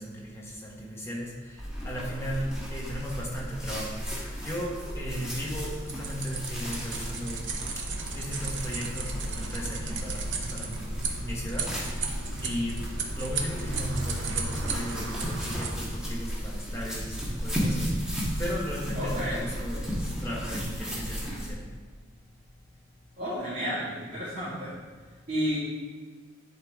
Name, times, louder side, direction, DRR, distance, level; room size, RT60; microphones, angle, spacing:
voice 1, 0.0-12.1 12.4-12.8 13.1-21.7, equal, 15° left, -4 dB, 1.2 m, -36 dB
sound 1, 1.6-21.5, equal, 5° right, 1.4 m, -34 dB
sound 2, 5.9-15.7, right 4 dB, 60° right, 0.9 m, -35 dB
voice 2, 18.9-19.4 23.2-24.8 25.3-25.6, equal, 40° right, -12 dB, 2.2 m, -31 dB
10.5 x 4.8 x 3.6 m, 1.5 s
head